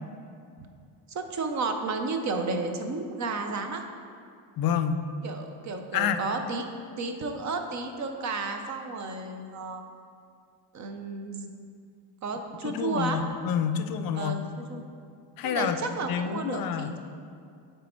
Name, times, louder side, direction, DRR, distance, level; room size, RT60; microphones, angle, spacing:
voice 1, 1.1-3.8 5.2-6.6 7.0-9.8 10.7-11.5 12.2-13.2 14.1-14.8 15.4-17.0, right 3 dB, 40° right, 5 dB, 0.6 m, -32 dB
voice 2, 4.6-5.0 5.9-6.2 12.6-14.4 15.4-16.9, left 8 dB, 50° left, 10 dB, 0.4 m, -28 dB
8.3 x 3.4 x 4.3 m, 2.4 s
cardioid pair, 115°, 47 cm